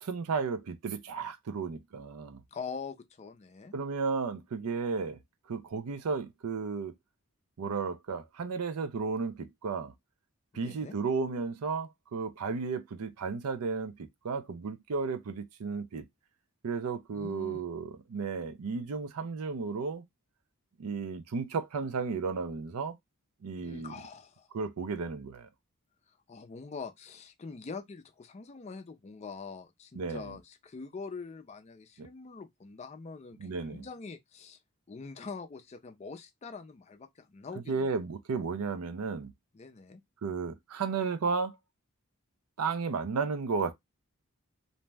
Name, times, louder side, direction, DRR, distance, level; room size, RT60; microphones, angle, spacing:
voice 1, 0.0-2.4 3.7-5.2 5.5-6.9 7.6-9.9 10.5-16.0 16.6-20.0 20.8-22.9 23.4-23.9 24.5-25.5 29.9-30.4 32.0-32.1 33.4-33.9 37.7-39.3 40.2-41.6 42.6-43.7, right 5 dB, 85° right, 0.5 m, -33 dB
voice 2, 2.5-3.7 10.5-11.0 17.1-17.6 23.6-24.5 26.1-34.6 34.9-37.9 39.5-40.0, left 4 dB, 30° left, 0.4 m, -44 dB
2.6 x 2.1 x 3.2 m
head